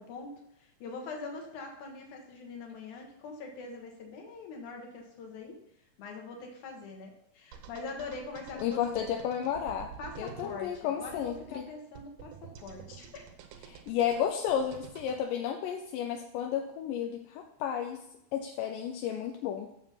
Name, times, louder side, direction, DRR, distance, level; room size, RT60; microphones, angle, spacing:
voice 1, 0.0-5.6 6.0-9.1 10.0-13.3, left 3 dB, 60° left, 2 dB, 2.7 m, -43 dB
sound 1, 7.5-15.2, right 8 dB, 75° right, 2.6 m, -49 dB
voice 2, 8.5-9.9 10.2-11.6 13.7-18.0 18.3-19.7, left 9 dB, 80° left, 3 dB, 2.1 m, -32 dB
7.3 x 6.8 x 5.7 m, 0.77 s
omnidirectional pair, 4.4 m